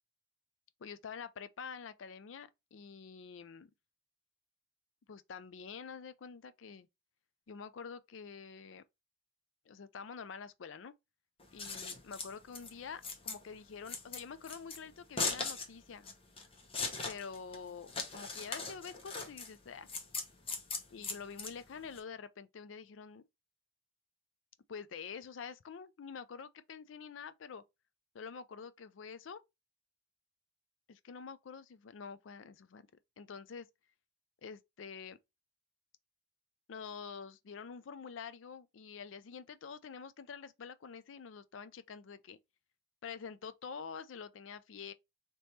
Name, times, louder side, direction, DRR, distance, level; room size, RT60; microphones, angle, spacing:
voice 1, 0.8-3.7 5.1-6.9 7.5-8.8 9.7-10.9 11.5-16.1 17.1-19.9 20.9-23.3 24.7-27.6 28.1-29.4 30.9-32.9 33.2-33.7 34.4-35.2 36.7-42.4 43.0-44.9, left 6 dB, 85° left, 0.4 m, -47 dB
Scissors, 11.4-22.0, left 4 dB, 30° left, 0.9 m, -40 dB
3.4 x 2.9 x 4.1 m
head